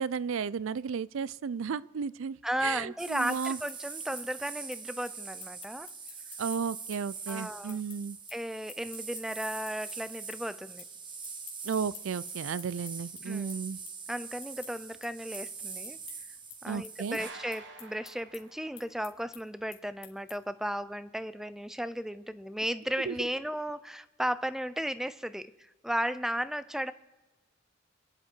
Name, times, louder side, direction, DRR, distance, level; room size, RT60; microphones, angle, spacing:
voice 1, 0.0-3.6 6.4-8.2 11.6-13.8 16.7-17.2 23.1-23.2, right 6 dB, 75° right, 20 dB, 0.4 m, -34 dB
voice 2, 2.4-5.9 7.3-7.8 8.3-10.8 13.2-13.5 14.1-16.0 16.6-26.9, equal, ahead, 14 dB, 0.4 m, -35 dB
sound 1, 3.0-17.3, right 5 dB, 25° right, 1.1 m, -43 dB
sound 2, 3.4-10.0 10.3-10.9 11.2-20.6, left 12 dB, 65° left, 3.2 m, -51 dB
sound 3, 17.2-19.1, right 4 dB, 55° right, 1.6 m, -48 dB
28.0 x 10.0 x 4.5 m, 1.2 s
head